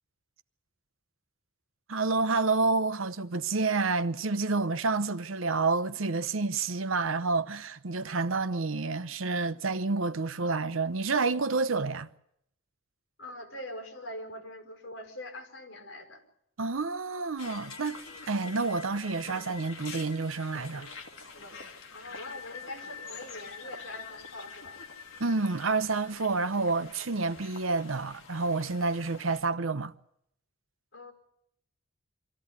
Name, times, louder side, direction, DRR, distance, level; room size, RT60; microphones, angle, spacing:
voice 1, 1.9-12.1 16.6-18.0 18.3-20.9 25.2-29.9, right 3 dB, 85° right, 0.9 m, -29 dB
voice 2, 13.2-16.2 21.9-24.8 30.9-31.1, left 1 dB, 70° left, 5.2 m, -43 dB
sound 1, 17.4-29.4, left 4 dB, 85° left, 2.2 m, -46 dB
24.5 x 15.0 x 9.7 m
head